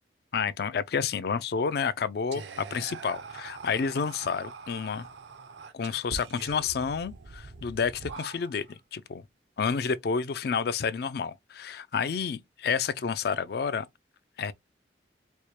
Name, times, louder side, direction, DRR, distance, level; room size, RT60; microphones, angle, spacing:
voice 1, 0.3-2.4 2.7-5.1 5.7-8.7 8.9-9.2 9.6-13.9 14.4-14.5, left 6 dB, 60° left, 0.4 m, -30 dB
Whispering, 2.3-8.8, right 4 dB, 80° right, 0.6 m, -43 dB
4.3 x 2.1 x 3.1 m
head